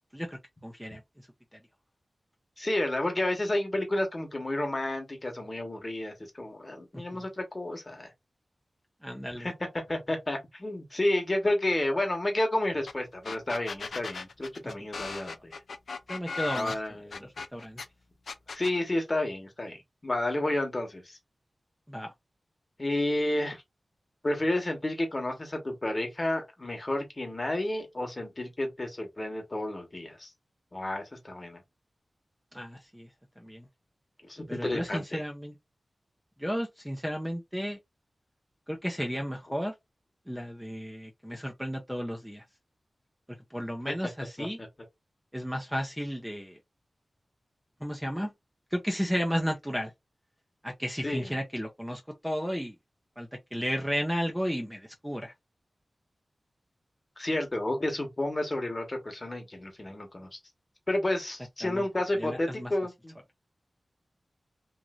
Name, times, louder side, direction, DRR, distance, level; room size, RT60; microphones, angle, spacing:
voice 1, 0.1-1.3 1.5-1.6 6.9-7.2 9.0-9.5 14.6-14.7 16.1-16.8 17.2-17.8 21.9-22.1 32.5-33.1 33.4-33.6 34.5-35.6 36.4-37.8 38.7-39.7 40.3-42.4 43.5-44.6 45.3-46.6 47.8-48.3 48.7-49.9 50.6-52.7 53.2-55.3 61.6-61.9 62.1-62.7, equal, 5° right, 0.6 m, -33 dB
voice 2, 2.6-8.1 9.4-9.5 9.9-15.5 16.5-17.3 18.5-21.2 22.8-23.6 24.2-30.3 30.7-31.6 34.3-35.2 44.4-44.5 51.0-51.3 57.2-60.4 60.9-63.1, left 1 dB, 35° left, 1.1 m, -31 dB
sound 1, 12.9-13.0 13.2-17.9 18.3-18.8, left 4 dB, 85° left, 0.3 m, -37 dB
3.1 x 2.6 x 2.4 m
wide cardioid pair, 85°, 0 cm